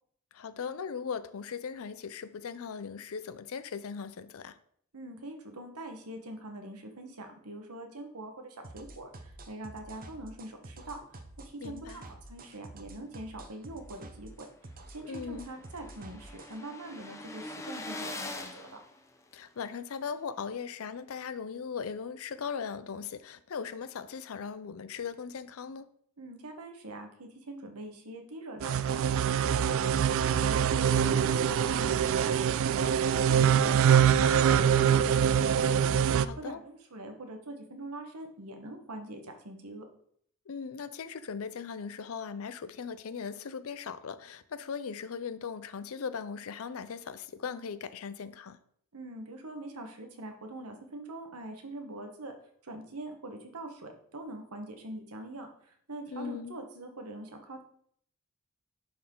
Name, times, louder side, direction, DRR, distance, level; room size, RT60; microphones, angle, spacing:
voice 1, 0.3-4.6 11.6-12.0 15.0-15.5 19.3-25.9 36.3-36.6 40.5-48.6 56.1-56.6, left 6 dB, 70° left, 0.5 m, -39 dB
voice 2, 4.9-11.0 11.4-18.8 26.2-32.9 33.3-39.9 48.9-52.3 52.6-57.6, right 1 dB, 85° right, 1.3 m, -43 dB
sound 1, 8.6-16.6, right 2 dB, 40° right, 0.8 m, -48 dB
sound 2, 14.1-14.2 14.5-14.6 14.8-19.7, left 2 dB, 15° left, 0.6 m, -43 dB
sound 3, 28.6-36.3, right 8 dB, 60° right, 0.3 m, -24 dB
11.0 x 4.3 x 3.8 m
head